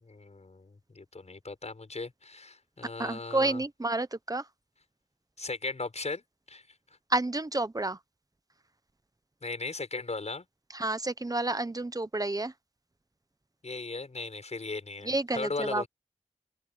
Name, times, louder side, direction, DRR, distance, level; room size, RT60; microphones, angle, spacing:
voice 1, 0.0-3.6 5.4-6.6 9.4-10.5 13.6-15.9, left 3 dB, 75° left, 6.8 m, -37 dB
voice 2, 3.0-4.4 7.1-8.0 10.7-12.5 15.0-15.8, right 2 dB, 30° right, 1.1 m, -30 dB
open air
wide cardioid pair, 55°, 12 cm